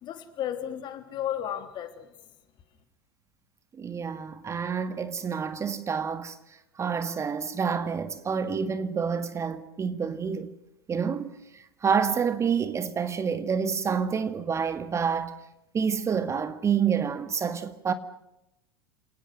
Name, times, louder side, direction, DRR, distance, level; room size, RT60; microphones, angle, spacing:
voice 1, 0.0-2.1, left 10 dB, 40° left, 3.4 m, -33 dB
voice 2, 3.8-6.4 6.8-10.5 10.9-15.4 15.7-17.9, right 6 dB, 25° right, 1.8 m, -28 dB
29.5 x 19.5 x 6.4 m
figure-of-eight pair, 85°, 12 cm